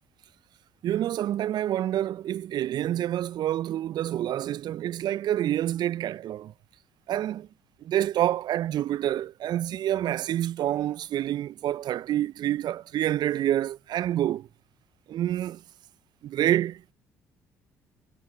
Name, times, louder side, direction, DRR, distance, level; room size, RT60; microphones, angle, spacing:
voice 1, 0.8-6.5 7.1-7.5 7.8-14.5 15.1-15.6 16.2-16.9, right 12 dB, 55° right, 1.0 m, -27 dB
figure-of-eight pair, 50°, 9 cm